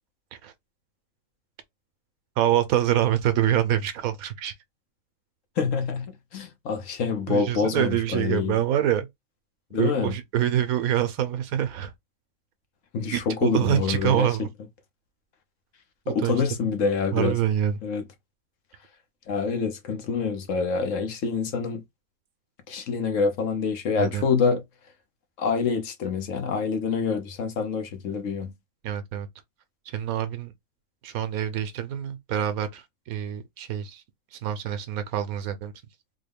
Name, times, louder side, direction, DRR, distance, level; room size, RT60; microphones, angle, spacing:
voice 1, 2.4-4.5 7.3-9.1 9.8-11.9 13.1-14.5 16.1-16.3 17.1-17.8 24.0-24.2 28.8-29.3 29.9-30.5 31.0-34.0 34.3-35.7, right 11 dB, 90° right, 1.1 m, -26 dB
voice 2, 5.6-8.6 9.7-10.2 12.9-14.3 16.1-17.4 17.8-18.1 19.3-21.8 22.7-24.6 25.4-28.5, left 5 dB, 65° left, 1.1 m, -26 dB
3.8 x 2.2 x 3.4 m
omnidirectional pair, 1.5 m